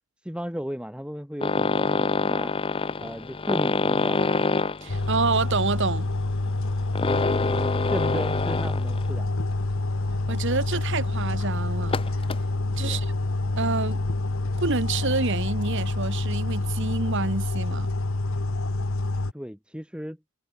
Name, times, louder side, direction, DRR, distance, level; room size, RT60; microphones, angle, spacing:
voice 1, 0.2-2.5 3.0-4.5 7.1-9.3 12.8-13.1 19.3-20.2, equal, 5° right, 7.5 m, -35 dB
sound 1, 1.4-9.2 9.5-9.8 10.3-10.4 10.7-10.8 11.8-12.4 13.7-13.9 14.3-14.7 15.5-15.6 15.8-15.9 16.1-16.2, left 3 dB, 25° left, 0.5 m, -26 dB
voice 2, 4.8-6.1 10.3-12.0 12.7-13.1 13.6-14.0 14.6-17.9, right 4 dB, 55° right, 1.3 m, -28 dB
sound 2, 4.9-19.3, left 2 dB, 65° left, 1.2 m, -27 dB
head